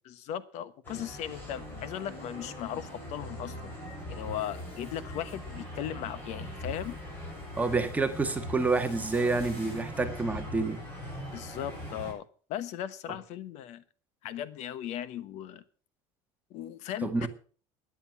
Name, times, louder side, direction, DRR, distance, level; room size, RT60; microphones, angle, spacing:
voice 1, 0.0-3.7 4.1-6.9 11.3-13.8 14.2-15.6 16.5-17.3, left 10 dB, 60° left, 15 dB, 1.2 m, -37 dB
sound 1, 0.8-12.1, left 1 dB, 15° left, 7.4 m, -41 dB
voice 2, 7.6-10.8 17.0-17.3, right 3 dB, 10° right, 6 dB, 1.6 m, -28 dB
13.0 x 9.9 x 5.9 m, 0.40 s
cardioid pair, 135°, 13 cm